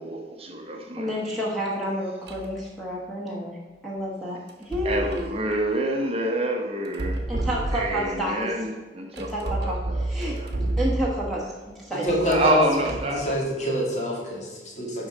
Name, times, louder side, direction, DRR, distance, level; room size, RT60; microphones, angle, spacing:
voice 1, 0.0-1.1 4.8-7.3 7.7-10.5 12.3-13.4, right 1 dB, 35° right, 2 dB, 0.9 m, -28 dB
voice 2, 0.9-3.6 3.8-5.3 7.3-8.5 9.1-10.4 10.8-12.1, equal, ahead, -6 dB, 1.3 m, -30 dB
sound 1, 2.3-2.6 4.5-5.4 6.9-8.2 9.2-11.4 12.1-13.2, right 1 dB, 70° right, 1.0 m, -30 dB
voice 3, 11.9-12.6 13.1-15.1, equal, 40° left, -4 dB, 2.1 m, -26 dB
10.5 x 3.9 x 5.1 m, 1.3 s
head